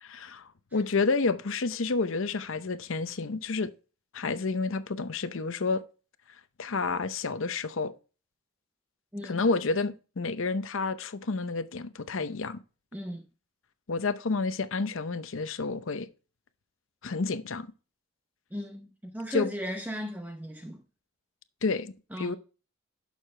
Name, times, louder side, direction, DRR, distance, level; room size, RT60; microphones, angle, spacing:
voice 1, 0.0-3.7 4.1-5.8 6.6-7.9 9.2-12.6 13.9-16.1 17.0-17.7 19.3-19.5 21.6-22.4, left 4 dB, 65° left, 0.7 m, -30 dB
voice 2, 12.9-13.3 18.5-20.8 22.1-22.4, equal, 10° right, 0.7 m, -36 dB
11.5 x 6.5 x 3.2 m
head